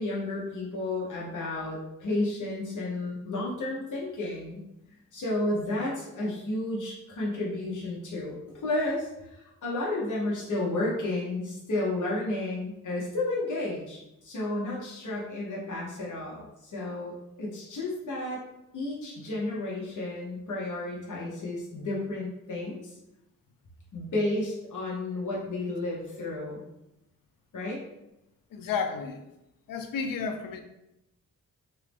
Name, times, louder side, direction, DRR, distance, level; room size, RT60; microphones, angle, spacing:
voice 1, 0.0-4.6 5.1-18.4 18.7-22.9 23.9-26.6 27.5-27.8, left 2 dB, 65° left, -5 dB, 1.0 m, -32 dB
voice 2, 28.5-29.2 29.7-30.6, left 5 dB, 80° left, 6 dB, 0.5 m, -31 dB
3.0 x 2.7 x 3.4 m, 0.89 s
cardioid pair, 70°, 34 cm